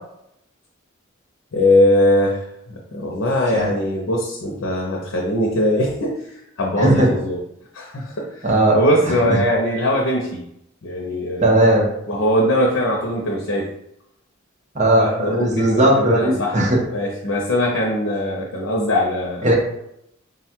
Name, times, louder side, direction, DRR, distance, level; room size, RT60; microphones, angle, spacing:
voice 1, 1.5-2.4 2.9-6.2 6.6-7.4 7.7-10.4 10.8-11.5 12.1-13.7 15.0-16.6 16.9-19.5, left 1 dB, 75° left, -2 dB, 0.7 m, -21 dB
voice 2, 6.8-7.1 8.4-8.8 9.1-9.2 11.4-11.9 14.7-16.8 19.4-19.5, right 1 dB, 35° right, -1 dB, 1.0 m, -17 dB
3.9 x 2.4 x 4.4 m, 0.77 s
head